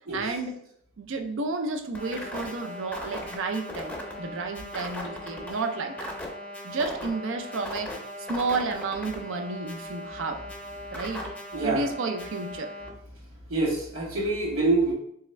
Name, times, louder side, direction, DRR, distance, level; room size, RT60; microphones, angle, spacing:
voice 1, 0.1-0.6 1.0-6.1 6.6-8.0 8.3-10.4 10.9-11.2 11.6-12.7, right 3 dB, 65° right, 6 dB, 0.5 m, -31 dB
sound 1, 1.9-12.9, left 1 dB, 10° left, 0.6 m, -38 dB
voice 2, 11.5-11.8 13.5-14.9, right 2 dB, 80° right, -2 dB, 1.0 m, -25 dB
3.5 x 3.3 x 3.1 m, 0.70 s
head